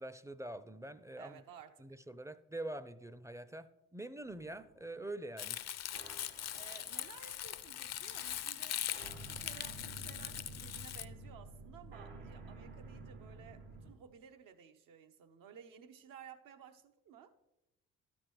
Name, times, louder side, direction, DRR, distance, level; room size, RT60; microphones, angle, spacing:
voice 1, 0.0-1.4 1.8-3.7 3.9-5.6, right 1 dB, 10° right, 0.5 m, -45 dB
voice 2, 1.2-2.0 6.5-8.8 9.3-17.3, right 8 dB, 65° right, 0.9 m, -56 dB
sound 1, 4.2-13.9, right 2 dB, 85° right, 2.4 m, -52 dB
Crumpling crinkling, 5.4-11.1, left 11 dB, 50° left, 0.5 m, -41 dB
12.5 x 5.2 x 3.1 m
hypercardioid pair, 50°, 34 cm